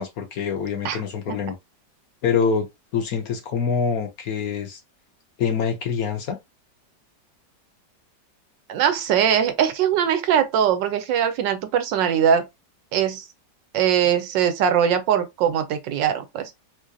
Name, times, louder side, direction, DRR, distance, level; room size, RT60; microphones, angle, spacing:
voice 1, 0.0-1.6 2.2-2.7 2.9-4.8 5.4-6.4, left 6 dB, 60° left, 1.1 m, -25 dB
voice 2, 8.7-12.4 12.9-13.3 13.7-16.5, right 9 dB, 85° right, 1.4 m, -21 dB
4.5 x 2.6 x 2.4 m
omnidirectional pair, 1.9 m